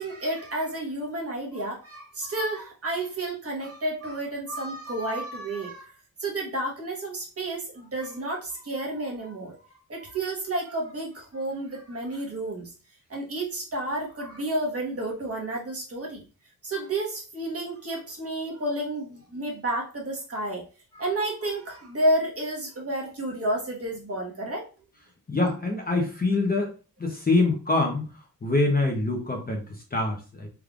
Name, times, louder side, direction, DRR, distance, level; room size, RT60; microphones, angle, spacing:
voice 1, 0.0-5.9 6.2-9.5 9.9-12.7 13.1-16.2 16.6-20.6 20.9-24.7, right 1 dB, 40° right, -2 dB, 1.3 m, -31 dB
voice 2, 25.3-26.7 27.0-30.5, left 2 dB, 25° left, 1 dB, 0.7 m, -25 dB
3.5 x 3.2 x 2.4 m, 0.35 s
wide cardioid pair, 130°, 37 cm